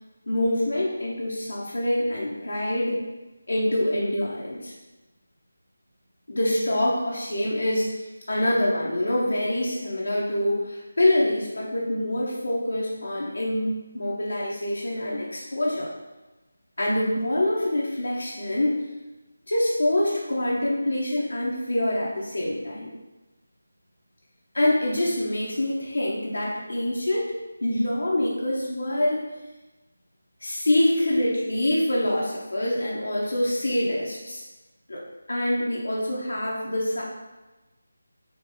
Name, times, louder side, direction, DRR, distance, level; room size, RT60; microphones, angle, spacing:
voice 1, 0.3-3.0 3.5-4.7 6.3-15.9 16.8-18.8 19.5-22.9 24.5-27.3 27.6-29.2 30.4-34.4 34.9-35.0 35.3-37.0, left 1 dB, 65° left, -5 dB, 0.9 m, -25 dB
4.7 x 2.9 x 3.6 m, 1.1 s
figure-of-eight pair, 160°, 0 cm